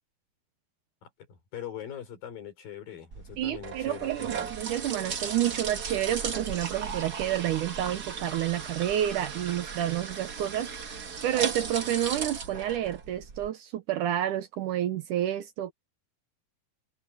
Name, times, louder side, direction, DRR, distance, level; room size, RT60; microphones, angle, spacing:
voice 1, 1.0-4.5, left 9 dB, 70° left, 5.7 m, -42 dB
sound 1, 3.1-13.5, right 6 dB, 55° right, 1.1 m, -36 dB
voice 2, 3.4-15.7, right 12 dB, 70° right, 2.2 m, -30 dB
omnidirectional pair, 4.3 m